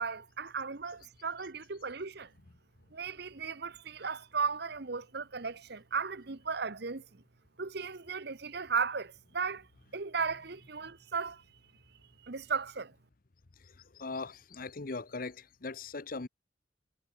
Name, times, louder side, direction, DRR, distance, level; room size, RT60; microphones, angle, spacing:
voice 1, 0.0-2.3 2.9-7.2 7.6-9.7 9.9-11.4 12.2-12.9, right 5 dB, 55° right, 1.0 m, -36 dB
voice 2, 13.9-16.3, left 3 dB, 45° left, 0.8 m, -39 dB
head